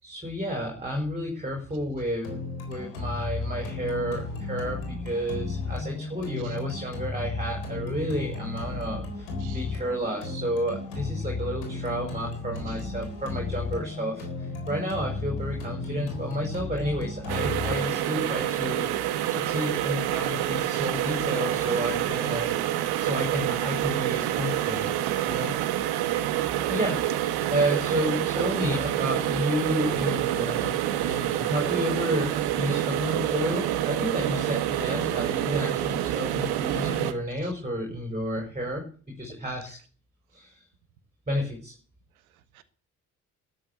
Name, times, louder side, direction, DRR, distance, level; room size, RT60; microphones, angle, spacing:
voice 1, 0.0-22.5 23.0-25.5 26.7-27.0 27.5-30.7 31.0-39.8 40.3-40.6 41.3-41.7, equal, 15° right, 1 dB, 5.5 m, -31 dB
sound 1, 2.2-20.2, left 3 dB, 70° left, 4.0 m, -34 dB
voice 2, 9.4-9.7 12.7-12.8 20.7-21.1 24.2-24.4 29.3-29.4 37.4-37.5 42.3-42.6, right 12 dB, 75° right, 13 dB, 1.5 m, -50 dB
sound 2, 17.3-37.1, right 12 dB, 60° right, 1.6 m, -27 dB
13.0 x 11.5 x 8.3 m, 0.43 s
figure-of-eight pair, 45°, 42 cm